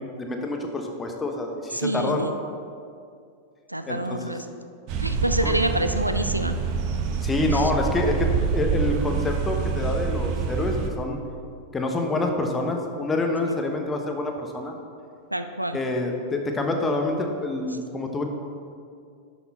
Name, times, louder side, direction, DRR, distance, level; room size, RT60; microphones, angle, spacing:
voice 1, 0.0-2.2 3.9-4.4 5.4-5.5 7.2-11.2 11.7-14.7 15.7-18.2, left 2 dB, 15° left, 3 dB, 1.2 m, -27 dB
voice 2, 1.7-2.4 3.7-4.4 5.0-6.6 7.4-7.7 13.5-13.6 15.3-15.8, right 1 dB, 85° right, 9 dB, 0.4 m, -27 dB
sound 1, 4.9-10.9, right 5 dB, 45° right, 0.8 m, -26 dB
11.5 x 6.1 x 4.3 m, 2.3 s
figure-of-eight pair, 90°, 0 cm